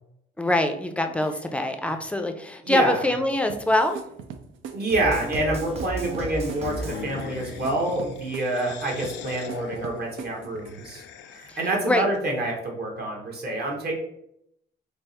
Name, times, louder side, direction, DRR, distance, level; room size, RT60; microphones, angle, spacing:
voice 1, 0.4-4.0 11.9-12.1, left 1 dB, 5° left, 5 dB, 0.4 m, -24 dB
voice 2, 2.6-3.0 4.7-11.0 11.3-14.0, right 2 dB, 50° right, 0 dB, 1.1 m, -27 dB
sound 1, 3.5-10.9, right 7 dB, 80° right, 0.5 m, -41 dB
sound 2, 4.9-7.6, right 1 dB, 30° right, 0.7 m, -34 dB
sound 3, 6.3-11.8, left 8 dB, 70° left, 0.4 m, -41 dB
3.4 x 2.0 x 4.1 m, 0.75 s
cardioid pair, 90°, 20 cm